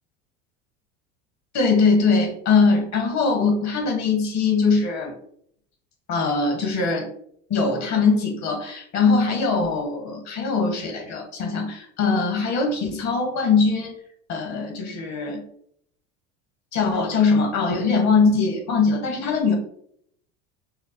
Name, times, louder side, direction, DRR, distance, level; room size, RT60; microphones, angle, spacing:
voice 1, 1.5-5.2 6.1-7.1 7.5-14.0 14.3-15.4 16.7-19.5, left 4 dB, 45° left, 2 dB, 1.5 m, -21 dB
5.5 x 2.0 x 3.0 m, 0.66 s
hypercardioid pair, 80°, 37 cm